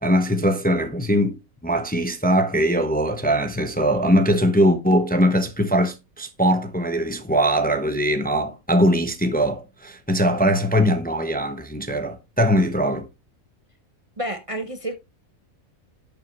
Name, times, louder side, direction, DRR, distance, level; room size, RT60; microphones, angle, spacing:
voice 1, 0.0-13.1, equal, 10° left, 0.9 m, -21 dB
voice 2, 14.2-15.0, right 1 dB, 30° right, 0.8 m, -29 dB
11.5 x 6.9 x 3.1 m
omnidirectional pair, 1.4 m